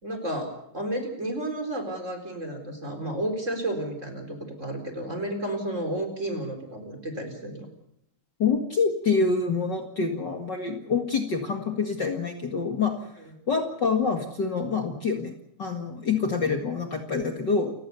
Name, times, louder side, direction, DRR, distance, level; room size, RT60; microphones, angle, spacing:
voice 1, 0.0-7.7, right 1 dB, 15° right, 5 dB, 4.0 m, -32 dB
voice 2, 8.4-12.9 13.5-17.7, left 5 dB, 85° left, 4 dB, 0.9 m, -26 dB
29.0 x 17.5 x 7.0 m, 0.75 s
omnidirectional pair, 5.3 m